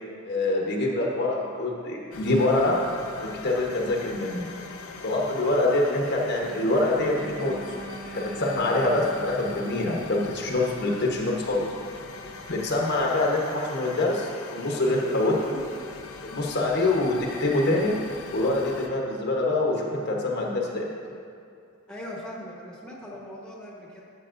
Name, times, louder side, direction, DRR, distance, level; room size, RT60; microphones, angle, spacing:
voice 1, 0.2-2.8 3.2-4.5 5.0-7.5 8.1-11.7 12.5-15.6 16.2-17.9 18.3-20.8, left 2 dB, 55° left, -1 dB, 1.0 m, -25 dB
sound 1, 2.1-18.9, left 4 dB, 85° left, 0.6 m, -42 dB
Wind instrument woodwind instrument, 6.3-9.8, right 2 dB, 90° right, 1.7 m, -42 dB
voice 2, 21.9-24.0, equal, 5° left, -4 dB, 1.1 m, -40 dB
12.0 x 7.2 x 2.6 m, 2.4 s
head